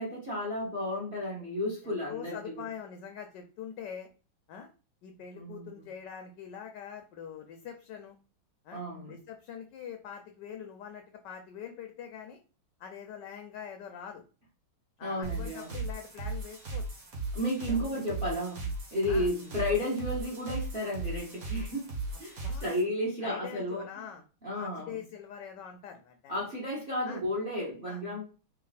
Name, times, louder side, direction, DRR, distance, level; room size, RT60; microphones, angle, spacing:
voice 1, 0.0-2.6 5.4-5.8 8.7-9.1 15.0-15.8 17.3-18.6 18.9-21.9 22.2-23.9 24.4-25.0 26.3-28.2, left 1 dB, 35° right, 1.0 m, -33 dB
voice 2, 1.8-4.1 4.5-4.7 5.0-8.1 8.6-8.8 9.1-12.4 12.8-14.2 15.0-16.9 17.7-18.0 19.1-19.3 22.1-22.7 23.2-24.2 24.5-26.5 27.0-27.2 27.8-28.0, left 8 dB, 70° left, 1.1 m, -44 dB
sound 1, 15.2-22.8, right 2 dB, 50° right, 1.3 m, -37 dB
3.4 x 2.7 x 3.9 m
omnidirectional pair, 2.3 m